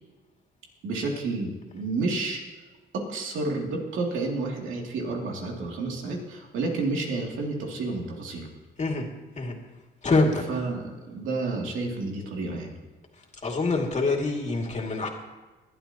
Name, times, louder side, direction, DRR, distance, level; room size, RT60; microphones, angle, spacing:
voice 1, 0.8-2.4 2.9-8.5 10.5-12.7, right 3 dB, 80° right, -1 dB, 2.8 m, -30 dB
voice 2, 10.0-10.6 13.4-15.1, left 3 dB, 35° left, 1 dB, 2.6 m, -25 dB
21.0 x 12.0 x 3.0 m, 1.2 s
cardioid pair, 90°, 20 cm